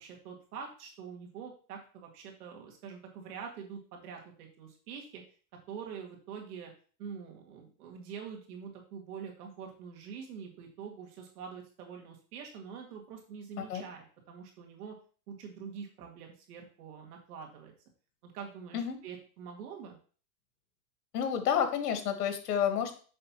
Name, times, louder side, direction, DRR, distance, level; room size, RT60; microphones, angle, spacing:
voice 1, 0.0-5.2 5.7-6.7 7.0-15.0 15.3-17.7 18.2-20.0, right 6 dB, 75° right, 1 dB, 2.2 m, -45 dB
voice 2, 21.1-22.9, left 8 dB, 90° left, 7 dB, 1.5 m, -30 dB
6.7 x 5.4 x 3.0 m, 0.40 s
supercardioid pair, 150°, 45 cm